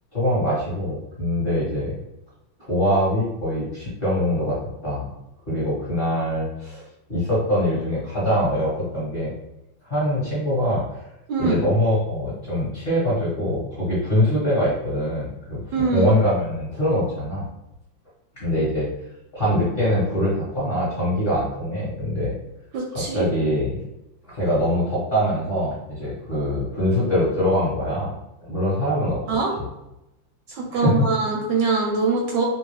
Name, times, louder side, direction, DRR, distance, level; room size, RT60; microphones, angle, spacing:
voice 1, 0.1-2.0 2.6-5.1 5.5-6.8 7.1-9.3 9.8-10.8 11.4-17.4 18.4-18.9 19.3-22.3 22.9-23.8 24.2-28.1 28.4-29.2 29.5-29.7 30.7-31.0, equal, 35° left, -9 dB, 1.0 m, -23 dB
voice 2, 15.7-16.1 22.7-23.3 29.3-29.5 30.5-32.4, right 4 dB, 75° right, 0 dB, 1.1 m, -23 dB
3.0 x 2.3 x 3.1 m, 0.90 s
omnidirectional pair, 2.1 m